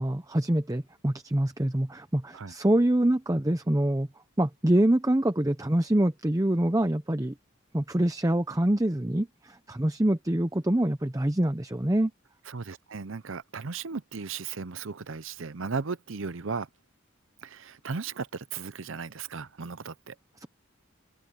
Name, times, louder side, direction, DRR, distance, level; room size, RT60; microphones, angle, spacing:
voice 1, 0.0-4.1 4.4-7.3 7.7-12.1 20.4-20.5, right 1 dB, 15° right, 0.7 m, -25 dB
voice 2, 12.5-16.7 17.4-20.1, right 5 dB, 65° right, 0.7 m, -36 dB
open air
head